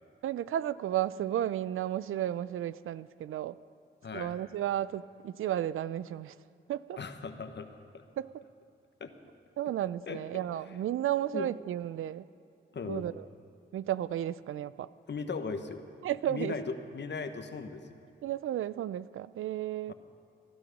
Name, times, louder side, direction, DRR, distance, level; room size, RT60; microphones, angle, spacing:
voice 1, 0.2-3.6 4.1-6.3 6.7-7.0 8.2-8.3 9.6-12.3 12.8-13.2 13.7-14.9 16.0-16.5 18.2-19.9, right 12 dB, 85° right, 17 dB, 0.4 m, -33 dB
voice 2, 7.0-8.0 9.0-9.1 10.1-10.2 10.7-10.8 11.3-11.5 12.7-13.1 15.1-15.9 16.3-18.0 19.9-20.0, left 4 dB, 60° left, 8 dB, 1.2 m, -38 dB
19.0 x 11.5 x 5.3 m, 2.7 s
cardioid pair, 50°, 21 cm